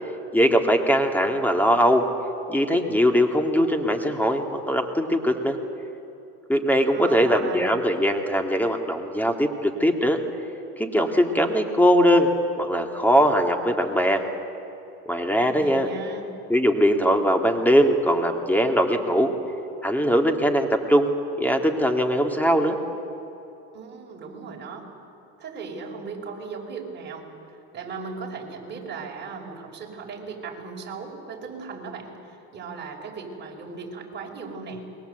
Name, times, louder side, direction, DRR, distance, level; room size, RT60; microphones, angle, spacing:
voice 1, 0.3-2.0 2.5-5.6 6.5-10.2 10.8-12.3 12.6-14.2 15.1-15.9 16.5-19.3 19.8-21.1 21.4-22.8, equal, 5° left, 4 dB, 2.2 m, -21 dB
voice 2, 6.9-7.6 15.5-16.3 23.7-24.9 25.4-27.3 27.7-34.9, right 4 dB, 35° right, 0 dB, 5.6 m, -37 dB
28.0 x 22.0 x 8.1 m, 2.9 s
supercardioid pair, 110°, 32 cm